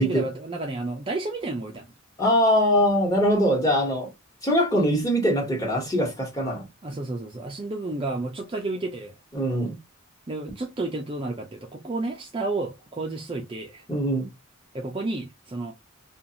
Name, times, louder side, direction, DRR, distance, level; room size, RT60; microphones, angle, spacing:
voice 1, 0.0-1.9 6.8-9.1 10.3-13.8 14.7-15.7, right 2 dB, 25° right, 0.5 m, -31 dB
voice 2, 2.2-4.1 4.4-6.6 9.3-9.8 13.9-14.3, equal, 15° left, 1.2 m, -22 dB
2.5 x 2.4 x 2.7 m
head